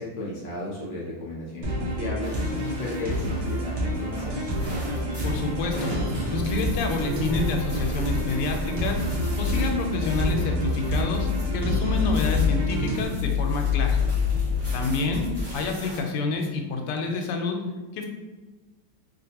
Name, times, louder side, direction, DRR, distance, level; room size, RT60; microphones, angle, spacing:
voice 1, 0.0-4.4 15.1-15.2, left 2 dB, 70° left, -5 dB, 1.1 m, -34 dB
sound 1, 1.6-13.0, equal, 70° right, 0.8 m, -29 dB
sound 2, 2.2-16.0, right 1 dB, 10° right, 0.7 m, -36 dB
voice 2, 5.2-5.9 6.3-9.0 9.4-14.0 14.7-15.2 15.5-17.6 17.9-18.1, left 3 dB, 90° left, 3 dB, 1.5 m, -28 dB
sound 3, 9.0-15.4, left 7 dB, 50° right, 1.3 m, -27 dB
3.4 x 2.5 x 2.8 m, 1.3 s
omnidirectional pair, 2.4 m